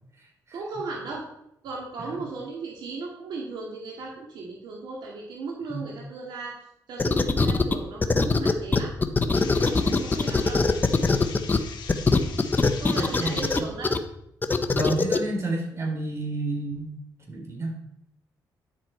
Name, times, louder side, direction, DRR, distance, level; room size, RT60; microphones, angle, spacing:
voice 1, 0.5-1.2 1.6-6.6 6.9-8.9 9.8-10.6 12.8-13.9, right 3 dB, 75° right, -2 dB, 2.0 m, -36 dB
sound 1, 7.0-7.7 8.0-11.6 11.9-14.0 14.4-15.2, left 3 dB, 25° left, 0.9 m, -21 dB
sound 2, 9.3-13.6, left 6 dB, 75° left, 1.4 m, -42 dB
voice 2, 9.6-10.0 12.9-13.5 14.7-16.9 17.3-17.7, right 2 dB, 40° right, 1 dB, 3.7 m, -31 dB
10.0 x 7.8 x 4.5 m, 0.78 s
cardioid pair, 100°, 8 cm